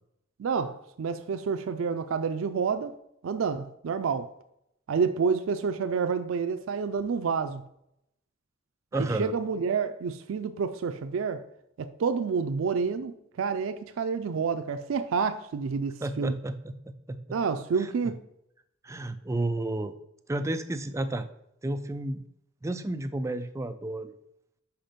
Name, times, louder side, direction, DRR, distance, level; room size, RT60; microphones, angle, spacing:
voice 1, 0.4-2.9 3.2-4.3 4.9-7.6 8.9-11.4 11.8-16.4 17.3-18.2, right 5 dB, 85° right, 0.4 m, -29 dB
voice 2, 8.9-9.3 16.0-16.7 17.1-17.2 17.8-17.9 18.8-19.9 20.3-21.3 21.6-22.2 22.6-24.1, right 1 dB, 15° right, 0.3 m, -31 dB
5.8 x 5.1 x 5.1 m
head